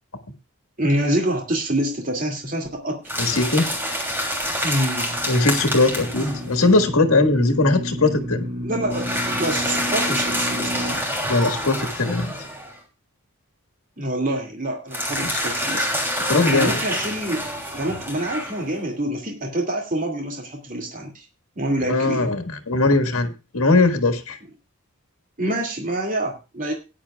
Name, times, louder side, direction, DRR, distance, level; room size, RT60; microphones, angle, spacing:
voice 1, 0.8-3.0 4.6-5.1 6.1-6.3 8.6-11.1 14.0-17.5 17.7-21.2 21.6-22.3 25.4-26.7, right 1 dB, 40° right, 1 dB, 2.4 m, -26 dB
sound 1, 3.0-6.6 8.9-12.8 14.9-18.8, equal, 10° right, 3.0 m, -27 dB
voice 2, 3.2-3.7 5.3-8.5 11.3-12.3 15.2-15.4 16.3-16.8 21.9-24.4, left 3 dB, 70° left, 6 dB, 1.7 m, -20 dB
sound 2, 5.1-11.0, left 1 dB, 70° right, 7.7 m, -32 dB
17.5 x 10.5 x 2.4 m, 0.29 s
head